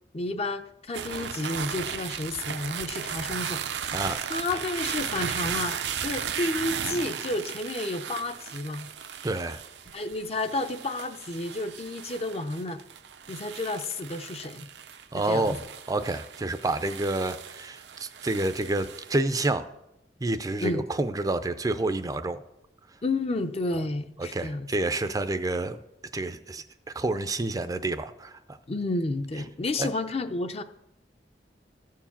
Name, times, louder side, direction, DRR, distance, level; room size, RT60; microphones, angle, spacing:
voice 1, 0.1-3.6 4.3-8.9 9.9-12.8 13.3-14.7 15.1-15.6 20.6-20.8 23.0-24.7 28.7-30.6, left 2 dB, 35° left, 9 dB, 0.6 m, -31 dB
sound 1, 0.9-19.2, right 8 dB, 85° right, 0.7 m, -36 dB
voice 2, 9.2-9.6 15.1-15.6 15.9-19.6 20.2-22.4 24.2-25.8 26.1-26.6 26.9-28.4 29.8-29.9, right 2 dB, 20° right, 10 dB, 0.5 m, -28 dB
14.0 x 4.7 x 7.2 m, 0.85 s
head